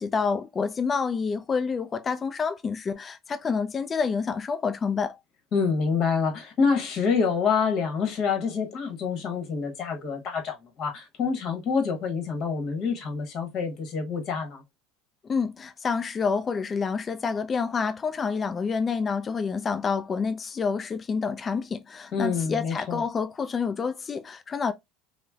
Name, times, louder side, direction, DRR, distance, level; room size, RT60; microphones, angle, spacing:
voice 1, 0.0-5.2 15.2-24.7, left 5 dB, 30° left, 0.3 m, -28 dB
voice 2, 5.5-14.6 22.1-23.0, left 5 dB, 50° left, 1.1 m, -27 dB
3.1 x 2.0 x 2.3 m
supercardioid pair, 110°, 0 cm